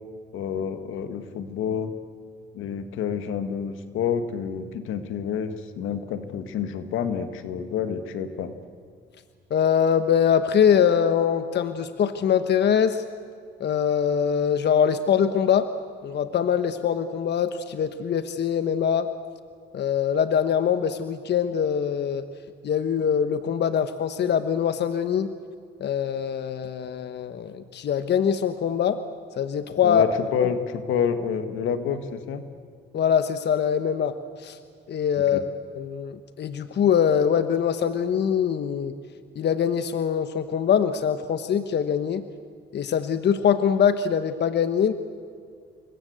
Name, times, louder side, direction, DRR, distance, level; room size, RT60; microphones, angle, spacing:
voice 1, 0.3-1.9 2.5-8.5 29.8-32.4 35.3-35.4, left 7 dB, 85° left, 9 dB, 1.9 m, -28 dB
voice 2, 9.5-13.0 13.6-15.7 16.0-19.1 19.7-22.2 22.6-25.3 25.8-29.0 29.4-30.0 30.4-30.5 32.9-34.6 34.9-35.5 35.8-38.9 39.4-42.2 42.7-44.9, left 8 dB, 60° left, 10 dB, 1.2 m, -23 dB
28.0 x 22.5 x 8.1 m, 2.2 s
cardioid pair, 90°, 20 cm